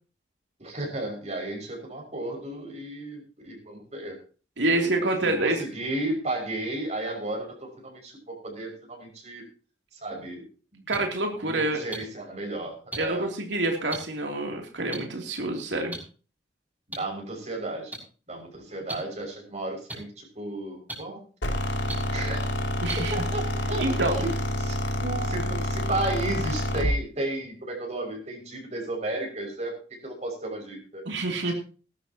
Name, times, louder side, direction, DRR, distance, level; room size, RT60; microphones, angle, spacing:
voice 1, 0.6-4.2 4.6-9.4 9.9-10.8 11.5-13.3 17.0-18.0 18.3-21.2 22.1-22.5 23.1-24.3 24.6-24.8 25.2-29.8 30.0-31.0 31.4-31.5, right 2 dB, 40° right, 2 dB, 6.1 m, -34 dB
voice 2, 4.6-5.6 10.9-11.8 13.0-15.9 22.8-23.1 23.8-24.2 25.0-25.3 31.0-31.5, right 2 dB, 75° right, 2 dB, 3.0 m, -27 dB
sound 1, 10.9-11.0 11.9-12.0 12.9-13.0 13.9-14.0 14.9-15.0 15.9-16.0 16.9-17.0 17.9-18.0 18.9-19.0 19.9-20.0 20.9-21.0 21.9-22.0 22.9-23.0 23.9-24.0, right 2 dB, 10° right, 6.0 m, -34 dB
sound 2, 21.4-27.0, left 1 dB, 80° left, 3.0 m, -28 dB
20.0 x 12.5 x 3.0 m, 0.37 s
head